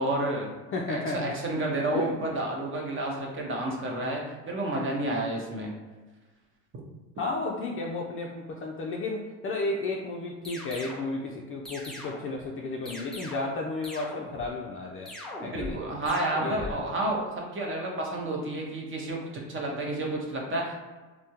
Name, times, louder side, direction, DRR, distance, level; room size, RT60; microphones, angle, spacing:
voice 1, 0.0-0.5 0.9-5.7 15.5-17.2 17.5-20.7, right 1 dB, 30° right, -1 dB, 0.8 m, -30 dB
voice 2, 0.7-1.3 1.9-2.1 7.2-15.1 15.4-15.8 16.4-16.7, left 3 dB, 35° left, -1 dB, 0.4 m, -33 dB
sound 1, 10.4-11.1 11.6-12.4 12.8-13.6 13.8-14.5 15.0-15.8 16.0-16.7, left 1 dB, ahead, 0.8 m, -40 dB
3.4 x 2.1 x 2.8 m, 1.3 s
supercardioid pair, 100°, 42 cm